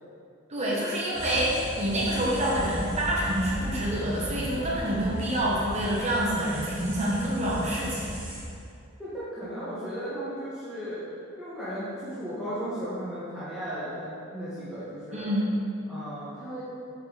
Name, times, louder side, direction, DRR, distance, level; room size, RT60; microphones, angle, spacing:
voice 1, 0.5-8.1 15.1-15.5, right 1 dB, 30° right, -6 dB, 1.4 m, -27 dB
sound 1, 1.1-8.4, equal, 55° right, 2.0 m, -36 dB
voice 2, 9.0-11.1 11.4-15.3 15.9-16.6, equal, 5° right, -13 dB, 1.7 m, -35 dB
8.0 x 6.0 x 4.2 m, 2.5 s
head